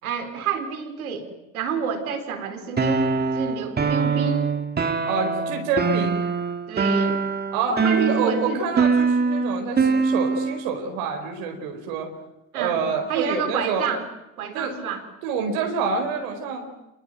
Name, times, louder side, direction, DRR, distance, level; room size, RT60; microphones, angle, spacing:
voice 1, 0.0-1.3 1.5-4.5 6.7-7.2 7.7-8.6 9.9-10.0 12.5-12.8 13.1-14.0 14.4-15.0, right 6 dB, 85° right, 8 dB, 4.2 m, -29 dB
sound 1, 2.8-10.6, right 4 dB, 20° right, 2.2 m, -23 dB
voice 2, 5.0-6.2 7.5-12.1 12.5-13.9 14.5-14.7 15.2-16.7, right 5 dB, 70° right, 3 dB, 4.7 m, -27 dB
27.0 x 22.0 x 9.3 m, 0.91 s
hypercardioid pair, 80°, 42 cm